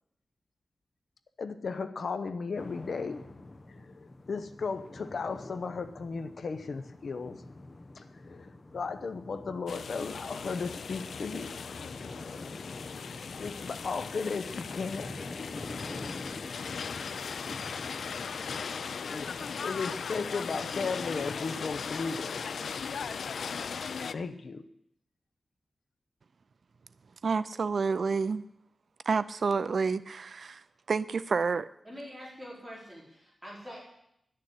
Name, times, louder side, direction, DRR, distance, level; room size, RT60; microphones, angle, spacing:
voice 1, 1.4-3.2 3.7-7.4 8.0-11.5 13.4-15.2 19.0-22.4 24.1-24.7, left 4 dB, 60° left, 10 dB, 0.8 m, -35 dB
sound 1, 2.6-21.4, left 2 dB, 30° left, 0.8 m, -47 dB
sound 2, 9.7-24.1, left 6 dB, 80° left, 0.4 m, -38 dB
voice 2, 27.2-28.4 29.1-31.7, right 5 dB, 55° right, 16 dB, 0.4 m, -29 dB
voice 3, 31.8-33.8, equal, 5° right, -4 dB, 3.8 m, -45 dB
11.5 x 6.6 x 9.3 m, 0.75 s
wide cardioid pair, 160°, 0 cm